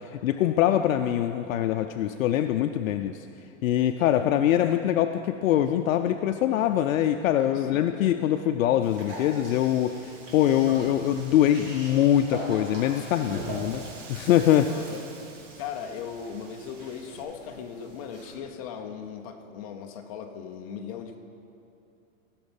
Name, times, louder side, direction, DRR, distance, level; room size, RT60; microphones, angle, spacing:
voice 1, 0.2-3.2 3.6-13.8 14.1-14.7, left 11 dB, 75° left, 7 dB, 0.5 m, -23 dB
voice 2, 4.0-4.3 7.5-7.9 14.7-15.0 15.3-21.2, left 7 dB, 25° left, 4 dB, 0.6 m, -38 dB
Wind, 8.8-17.2, right 4 dB, 65° right, 1.4 m, -49 dB
sound 1, 8.9-18.4, right 1 dB, 45° right, 3.0 m, -42 dB
16.0 x 5.8 x 5.3 m, 2.7 s
supercardioid pair, 170°, 40 cm